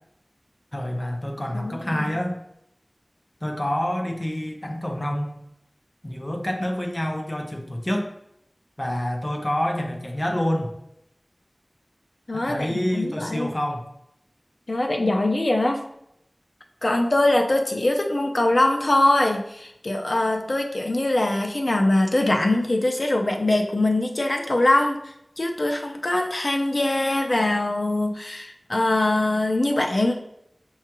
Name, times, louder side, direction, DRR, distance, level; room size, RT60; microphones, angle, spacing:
voice 1, 0.7-2.4 3.4-5.4 6.0-8.1 8.8-10.7 12.3-13.8, left 1 dB, 30° left, 2 dB, 0.7 m, -27 dB
voice 2, 1.5-2.1 12.3-13.5 14.7-15.8 16.8-30.2, left 1 dB, 70° left, 3 dB, 0.5 m, -22 dB
5.6 x 2.3 x 2.9 m, 0.77 s
wide cardioid pair, 50°, 0 cm